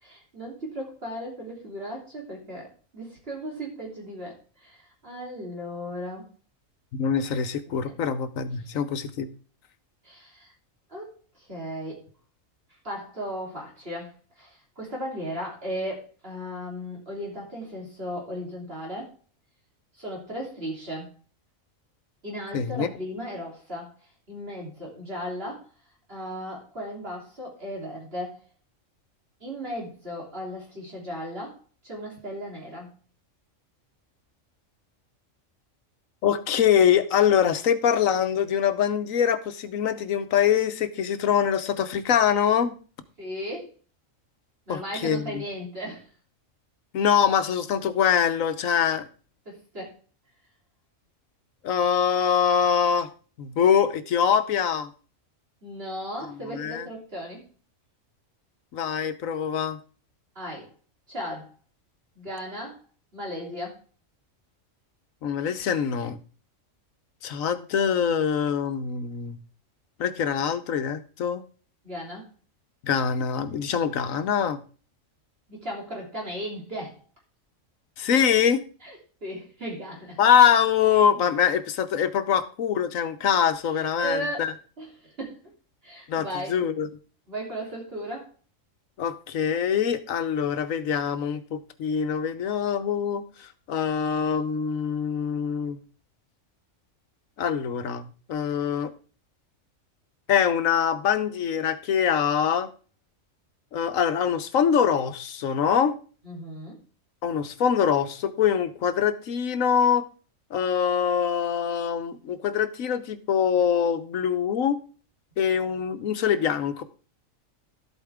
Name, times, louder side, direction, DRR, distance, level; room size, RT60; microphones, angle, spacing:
voice 1, 0.0-6.3 7.7-7.9 10.0-10.5 10.9-11.1 11.4-12.0 12.8-19.1 20.0-21.1 22.2-23.9 24.3-25.7 26.1-28.4 29.4-31.6 31.8-32.9 43.2-43.7 44.7-46.1 49.5-50.0 55.6-57.4 60.4-60.7 61.1-61.5 62.2-62.8 63.1-63.8 71.8-72.3 75.5-77.0 78.8-79.0 79.2-80.2 84.0-84.5 84.8-85.4 85.8-86.5 87.3-88.3 106.2-106.8, equal, 45° right, 3.5 m, -36 dB
voice 2, 6.9-9.3 22.5-22.9 36.2-42.8 44.7-45.4 46.9-49.1 51.6-53.1 53.4-54.9 56.5-56.9 58.7-59.8 65.2-66.2 67.2-69.4 70.0-71.4 72.8-74.6 78.0-78.6 80.2-84.5 86.1-86.9 89.0-95.8 97.4-98.9 100.3-102.7 103.7-106.0 107.2-110.1 110.5-114.8 115.4-116.8, left 8 dB, 85° left, 1.3 m, -24 dB
12.5 x 8.3 x 3.5 m
omnidirectional pair, 1.4 m